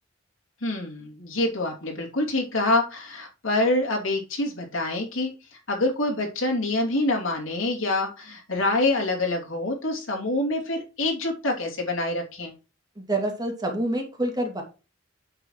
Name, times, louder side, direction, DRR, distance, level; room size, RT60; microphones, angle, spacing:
voice 1, 0.6-12.5, left 2 dB, 90° left, 0 dB, 2.8 m, -26 dB
voice 2, 13.0-14.6, right 1 dB, 20° right, 2 dB, 2.4 m, -27 dB
8.9 x 6.8 x 3.1 m, 0.31 s
head